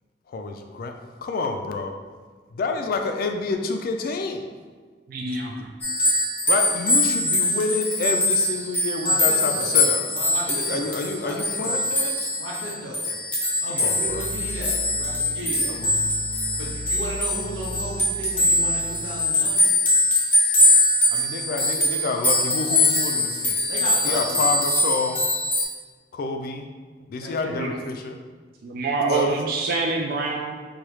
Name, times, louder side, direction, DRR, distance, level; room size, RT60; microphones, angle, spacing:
voice 1, 0.3-2.0 2.5-4.4 6.5-10.0 10.5-12.3 13.7-14.2 15.7-15.9 21.1-23.6 24.0-25.3 26.1-26.7 27.1-28.2 29.0-29.3, left 3 dB, 55° left, 5 dB, 0.3 m, -28 dB
voice 2, 5.1-5.7 27.5-27.8 28.6-30.5, right 3 dB, 55° right, -1 dB, 0.3 m, -26 dB
sound 1, 5.8-25.6, left 2 dB, 10° left, 0.6 m, -22 dB
voice 3, 9.0-9.7 10.1-10.9 11.2-11.8 12.4-13.1 13.6-15.8 16.6-19.6 23.7-24.5 27.2-27.6, right 1 dB, 85° right, -4 dB, 0.9 m, -35 dB
sound 2, 14.0-19.3, equal, 90° left, 0.7 m, -37 dB
4.6 x 2.3 x 3.1 m, 1.4 s
head